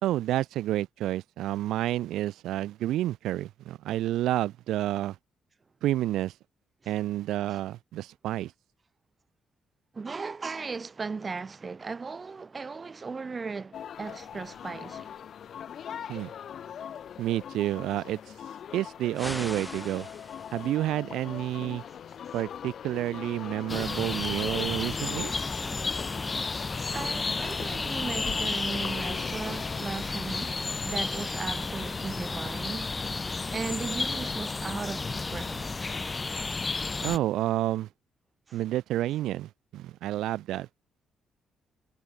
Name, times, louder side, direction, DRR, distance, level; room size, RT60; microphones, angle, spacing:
voice 1, 0.0-5.2 5.8-6.3 6.9-8.5 16.1-16.3 17.2-18.2 18.7-20.1 20.5-21.8 22.3-25.3 37.0-37.9 38.5-40.7, right 14 dB, 85° right, 2.2 m, -29 dB
voice 2, 9.9-15.1 21.9-22.0 22.3-22.4 26.9-33.0 33.5-35.7 38.5-38.6, right 4 dB, 30° right, 3.3 m, -37 dB
sound 1, 13.7-29.9, left 8 dB, 60° left, 7.3 m, -41 dB
sound 2, 19.1-20.8, left 1 dB, 5° left, 5.7 m, -40 dB
sound 3, 23.7-37.2, left 3 dB, 25° left, 1.7 m, -32 dB
cardioid pair, 90°, 0 cm